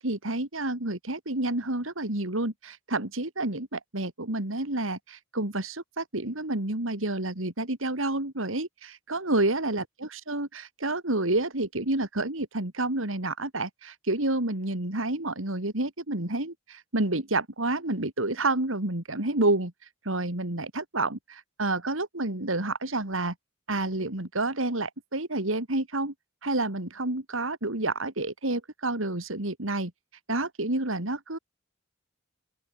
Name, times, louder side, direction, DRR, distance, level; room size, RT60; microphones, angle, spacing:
voice 1, 0.0-19.7 20.0-23.3 23.7-26.1 26.4-29.9 30.3-31.4, right 2 dB, 70° right, 3.3 m, -29 dB
open air
head